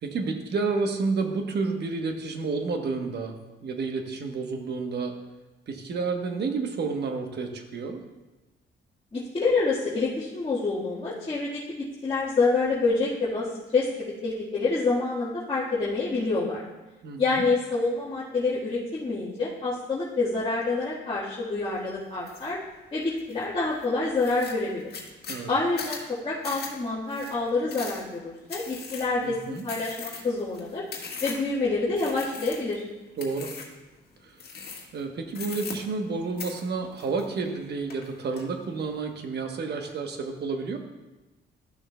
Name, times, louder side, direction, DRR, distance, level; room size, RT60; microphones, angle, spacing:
voice 1, 0.0-5.2 5.7-8.0 17.0-17.5 25.3-25.5 29.2-29.6 30.1-30.3 33.2-33.5 34.2-34.4 34.9-40.8, right 4 dB, 55° right, 5 dB, 1.1 m, -30 dB
voice 2, 9.1-11.6 12.0-13.5 13.7-16.6 17.2-22.6 22.9-24.9 25.5-30.8 31.2-32.8, left 3 dB, 25° left, -9 dB, 1.6 m, -27 dB
sound 1, 22.3-22.5 23.0-23.4 23.8-23.9 24.2-31.6 32.0-32.8 33.2-33.8 34.4-35.0 35.3-36.1 36.4-37.6 37.9-38.4, left 5 dB, 55° left, 1.5 m, -39 dB
12.5 x 6.3 x 2.2 m, 1.1 s
cardioid pair, 90°, 20 cm